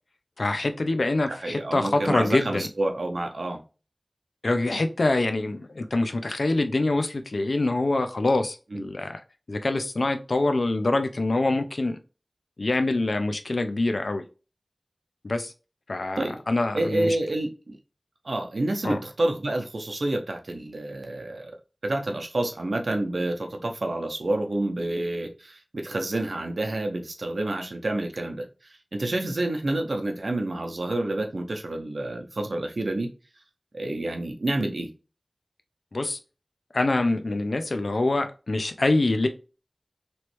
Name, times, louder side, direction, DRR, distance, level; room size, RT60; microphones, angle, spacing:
voice 1, 0.4-2.7 4.4-9.2 9.5-12.0 12.6-14.2 15.2-15.5 15.9-17.2 18.8-19.0 35.9-36.2 36.7-39.3, left 2 dB, 85° left, 0.5 m, -25 dB
voice 2, 1.3-3.6 8.7-8.9 16.2-16.4 16.7-17.8 18.2-21.5 21.8-33.1 33.7-34.9, right 2 dB, 90° right, 0.7 m, -28 dB
3.1 x 3.0 x 3.0 m
wide cardioid pair, 50°, 0 cm